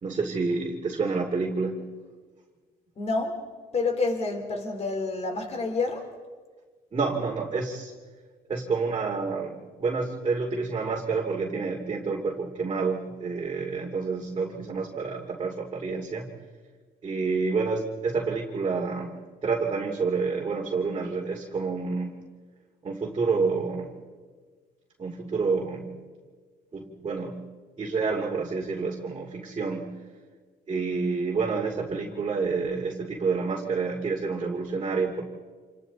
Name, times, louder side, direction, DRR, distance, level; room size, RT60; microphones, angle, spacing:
voice 1, 0.0-1.9 6.9-7.9 8.5-16.3 17.0-19.1 19.4-22.2 22.8-23.9 25.0-25.9 26.7-27.4 27.8-29.9 30.7-35.2, right 4 dB, 30° right, -3 dB, 2.8 m, -28 dB
voice 2, 3.0-3.5 3.7-6.1, left 3 dB, 40° left, 4 dB, 3.9 m, -28 dB
28.0 x 27.5 x 4.1 m, 1.5 s
cardioid pair, 110°, 17 cm